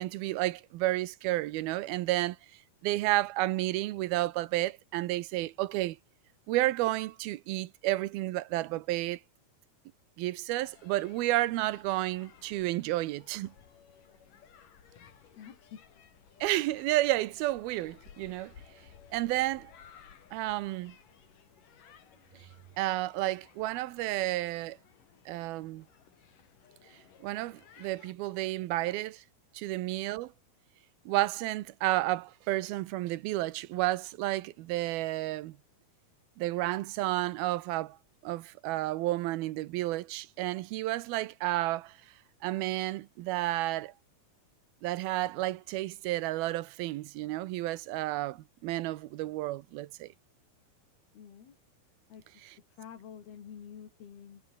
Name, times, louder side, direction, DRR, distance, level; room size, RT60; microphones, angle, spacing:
voice 1, 0.0-2.4 2.8-6.0 6.5-9.2 10.2-13.5 16.4-18.5 19.1-19.7 20.3-21.0 22.8-24.8 25.3-25.9 27.2-29.2 29.5-30.3 31.1-35.6 36.4-38.0 38.2-42.0 42.4-43.9 44.8-50.1, right 17 dB, 85° right, 2.7 m, -31 dB
sound 1, 10.5-28.1, left 8 dB, 60° left, 4.2 m, -58 dB
voice 2, 15.3-15.8 29.6-29.8 51.1-51.6 52.1-54.4, left 8 dB, 85° left, 5.1 m, -49 dB
omnidirectional pair, 4.3 m